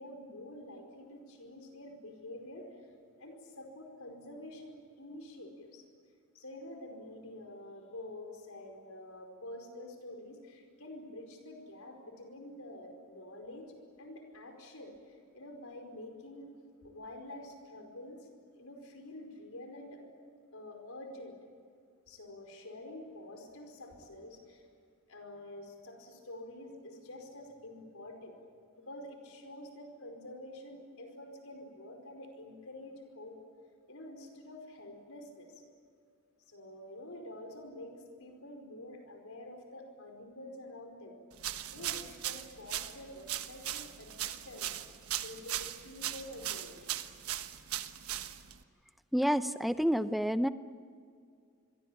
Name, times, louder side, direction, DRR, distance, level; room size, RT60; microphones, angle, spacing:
voice 1, 0.0-2.9 3.2-5.8 6.3-13.6 14.0-16.5 16.8-20.0 20.5-21.4 22.1-24.6 25.1-28.4 28.7-33.4 33.9-35.6 36.5-41.1 41.7-44.8 45.2-47.0 48.1-48.3, left 1 dB, 80° left, 4 dB, 5.0 m, -48 dB
sound 1, 41.4-48.6, right 11 dB, 90° right, 1.3 m, -39 dB
voice 2, 49.1-50.5, equal, ahead, 12 dB, 0.6 m, -29 dB
28.0 x 23.0 x 8.8 m, 2.2 s
head